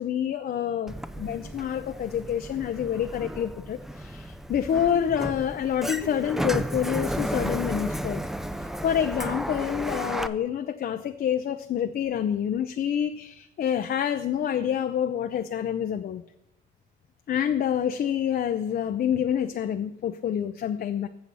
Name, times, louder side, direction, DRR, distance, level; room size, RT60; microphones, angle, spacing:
voice 1, 0.0-8.2 8.8-16.2 17.3-21.1, left 9 dB, 50° left, 7 dB, 0.5 m, -27 dB
Sliding door, 0.9-10.3, equal, ahead, 0.4 m, -33 dB
7.8 x 7.0 x 5.4 m, 0.88 s
cardioid pair, 90°, 20 cm